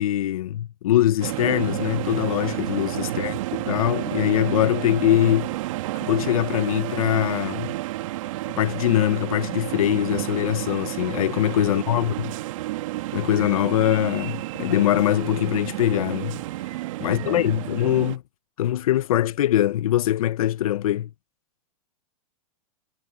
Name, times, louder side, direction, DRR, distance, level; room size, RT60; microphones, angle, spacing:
voice 1, 0.0-3.3 3.7-5.5 6.0-7.7 8.6-12.3 13.1-16.4 17.0-18.2 18.6-21.1, left 12 dB, 75° left, 1.3 m, -22 dB
sound 1, 1.2-18.2, right 17 dB, 60° right, 2.6 m, -31 dB
voice 2, 3.0-3.5 11.6-12.2 17.0-17.4, right 11 dB, 80° right, 4.8 m, -40 dB
hypercardioid pair, 130°, 18 cm